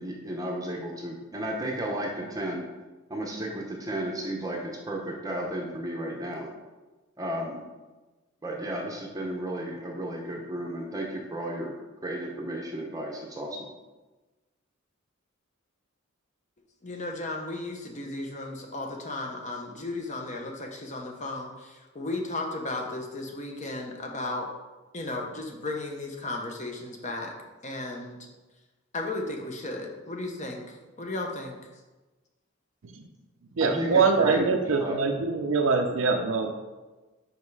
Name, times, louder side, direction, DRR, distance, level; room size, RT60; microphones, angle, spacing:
voice 1, 0.0-2.7 3.1-6.5 7.2-7.6 8.4-11.7 12.0-13.6 33.6-33.9 34.2-35.0, right 1 dB, 15° right, -1 dB, 0.7 m, -33 dB
voice 2, 16.8-24.5 24.9-27.3 27.6-28.2 28.9-31.6, left 2 dB, 35° left, 1 dB, 0.9 m, -35 dB
voice 3, 33.6-36.5, right 4 dB, 65° right, 3 dB, 0.5 m, -24 dB
5.4 x 5.3 x 4.7 m, 1.2 s
head